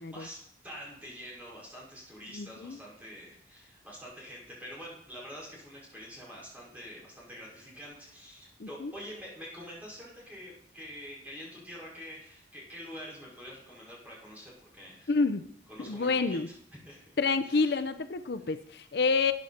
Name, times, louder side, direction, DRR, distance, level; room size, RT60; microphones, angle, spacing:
voice 1, 0.0-15.1 15.7-16.5 16.9-17.2 17.4-17.8, equal, 10° right, -6 dB, 5.5 m, -46 dB
voice 2, 2.3-2.8 8.6-8.9 15.1-15.5 15.8-16.5 17.2-19.3, left 4 dB, 65° left, 11 dB, 0.5 m, -28 dB
14.0 x 8.9 x 4.3 m, 0.68 s
head